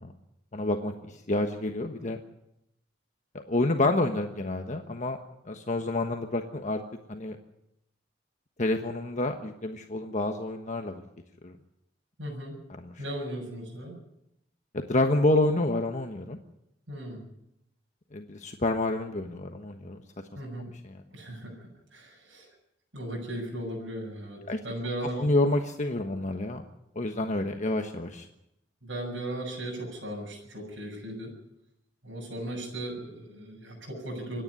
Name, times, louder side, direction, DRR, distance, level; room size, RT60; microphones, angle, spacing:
voice 1, 0.5-2.2 3.5-5.2 5.4-6.8 7.1-7.4 8.6-10.9 11.4-11.5 12.8-12.9 14.7-16.4 18.1-20.0 20.8-21.0 24.5-24.6 25.2-26.6 26.9-28.3, left 2 dB, 40° left, 5 dB, 1.3 m, -28 dB
voice 2, 12.2-12.6 13.0-14.0 16.9-17.2 20.4-20.7 21.1-22.5 22.9-25.3 28.8-31.3 32.0-34.4, right 1 dB, 85° right, -2 dB, 7.1 m, -37 dB
26.5 x 10.5 x 9.6 m, 0.82 s
head